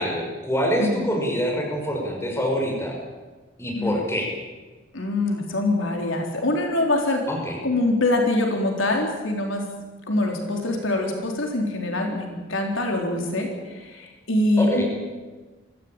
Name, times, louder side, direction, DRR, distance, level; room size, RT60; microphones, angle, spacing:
voice 1, 0.0-3.0 3.6-4.3 7.3-7.6 14.6-14.8, equal, 15° left, -1 dB, 5.8 m, -25 dB
voice 2, 4.9-7.2 7.6-9.6 10.1-13.5 13.8-14.8, left 2 dB, 75° left, 1 dB, 3.9 m, -24 dB
24.5 x 14.5 x 9.0 m, 1.3 s
head